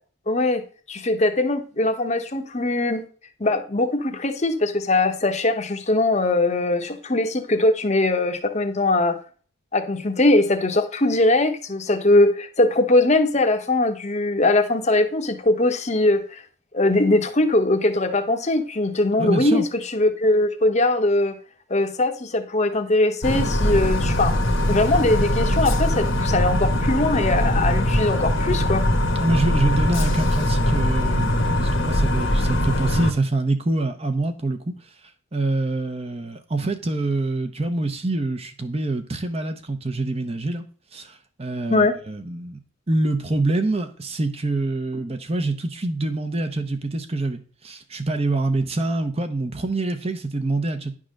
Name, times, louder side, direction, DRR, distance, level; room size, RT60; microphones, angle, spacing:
voice 1, 0.3-3.0 3.4-9.2 9.7-16.4 16.7-19.6 19.9-21.4 21.7-24.3 24.7-28.8 41.7-42.0, left 2 dB, 30° left, 0.9 m, -21 dB
voice 2, 19.2-19.6 29.2-34.7 35.3-40.6 40.9-42.6 42.9-50.9, right 2 dB, 30° right, 0.7 m, -25 dB
sound 1, 23.2-33.1, left 1 dB, 60° left, 1.1 m, -21 dB
10.0 x 3.7 x 6.4 m
head